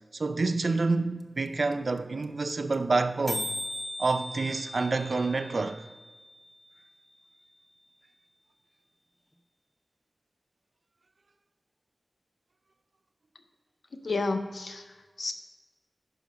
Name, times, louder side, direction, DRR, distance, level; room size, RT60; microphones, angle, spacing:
voice 1, 0.1-3.5 4.0-5.8, right 3 dB, 70° right, 0.5 m, -28 dB
sound 1, 1.2-1.3 1.5-1.6 1.7-2.0 2.2-2.3 2.5-2.7 3.0-3.1 3.3-7.2, left 1 dB, 15° left, 0.7 m, -39 dB
voice 2, 14.0-15.3, left 3 dB, 85° left, 0.6 m, -31 dB
10.5 x 5.0 x 5.0 m
wide cardioid pair, 65°, 0 cm